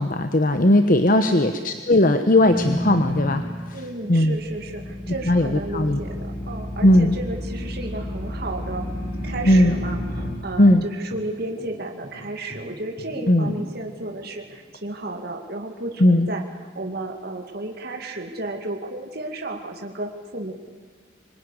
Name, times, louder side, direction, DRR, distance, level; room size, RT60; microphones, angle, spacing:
voice 1, 0.0-3.4 3.7-3.8 4.1-4.4 5.3-6.0 6.8-7.1 9.4-9.8 10.6-10.8 13.3-13.5 16.0-16.3, left 1 dB, 45° left, 8 dB, 1.1 m, -17 dB
voice 2, 1.1-1.4 3.7-8.8 9.2-16.4 16.8-20.5, right 2 dB, 50° right, 3 dB, 2.3 m, -33 dB
sound 1, 2.5-10.3, left 1 dB, 75° left, 5.3 m, -31 dB
sound 2, 8.1-14.6, equal, 30° right, 5.6 m, -43 dB
25.5 x 21.0 x 9.9 m, 1.5 s
head